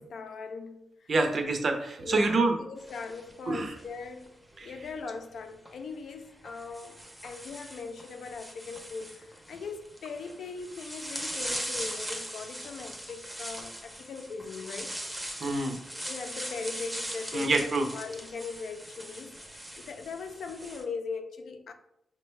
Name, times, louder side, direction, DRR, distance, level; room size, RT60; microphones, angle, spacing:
voice 1, 0.0-1.1 2.0-4.3 4.6-15.0 16.0-21.7, left 4 dB, 75° left, 0.4 m, -40 dB
voice 2, 1.1-2.6 3.4-3.7 4.6-4.7 15.4-15.8 17.3-17.9, right 3 dB, 50° right, 0.6 m, -26 dB
sound 1, 2.8-4.3 5.5-5.7 6.4-20.8, equal, 5° right, 0.6 m, -40 dB
5.2 x 2.2 x 3.1 m
cardioid pair, 105°, 0 cm